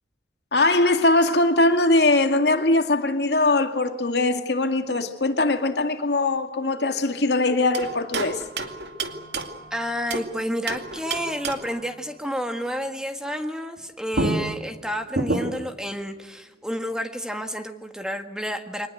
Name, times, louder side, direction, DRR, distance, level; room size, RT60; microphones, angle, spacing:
voice 1, 0.5-8.4, left 2 dB, 75° left, 2.2 m, -21 dB
sound 1, 7.7-10.3 10.7-11.8 13.8-13.9 14.1-15.8, right 2 dB, 75° right, 2.4 m, -29 dB
voice 2, 9.7-18.9, equal, 5° right, 1.7 m, -30 dB
25.0 x 20.0 x 8.0 m
head